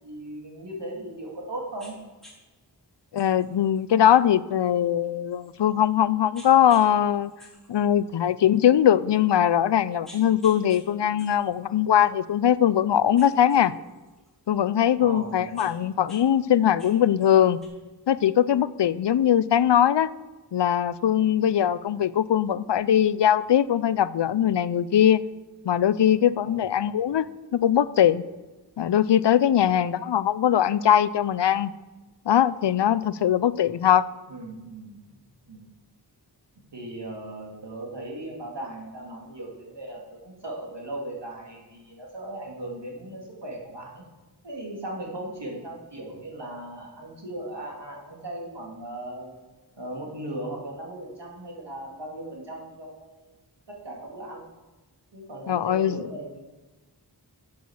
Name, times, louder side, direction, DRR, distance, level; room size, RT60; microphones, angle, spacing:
voice 1, 0.0-2.0 15.0-15.8 26.4-27.0 34.3-35.2 35.4-35.6 36.7-44.0 44.4-49.3 49.8-53.3 53.7-54.4 55.1-56.4, right 1 dB, 85° right, -2 dB, 2.6 m, -38 dB
sound 1, 1.8-1.9 2.2-2.4 3.1-5.8 6.3-6.9 7.2-8.6 9.1-9.2 9.8-10.8 11.2-12.8 13.1-14.5 15.2-16.2 16.5-17.7, left 1 dB, ahead, 3.5 m, -52 dB
voice 2, 3.1-7.3 7.7-13.7 14.5-17.6 18.1-20.1 20.5-25.2 25.7-28.2 28.8-31.7 32.3-34.0 55.5-56.1, left 10 dB, 80° left, 17 dB, 0.5 m, -21 dB
8.4 x 7.8 x 7.2 m, 1.2 s
wide cardioid pair, 60°, 41 cm